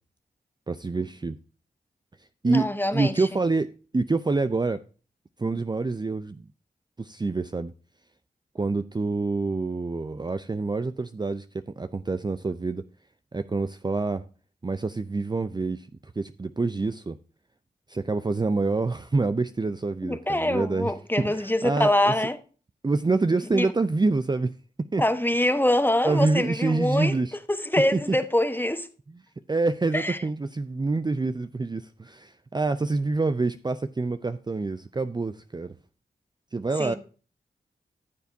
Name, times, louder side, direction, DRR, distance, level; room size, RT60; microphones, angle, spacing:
voice 1, 0.7-1.4 2.4-4.8 5.4-6.5 7.0-7.7 8.5-12.9 13.3-14.2 14.6-17.2 17.9-20.9 21.2-22.3 22.8-24.5 24.9-25.0 26.0-27.4 27.9-28.2 29.1-29.2 29.5-35.8 36.5-36.9, right 3 dB, 25° right, 0.5 m, -27 dB
voice 2, 2.4-3.3 20.0-22.4 23.5-23.7 25.0-27.2 27.5-28.9 29.9-30.2 36.8-37.0, left 1 dB, 10° left, 1.2 m, -24 dB
14.5 x 7.0 x 2.7 m
cardioid pair, 40°, 17 cm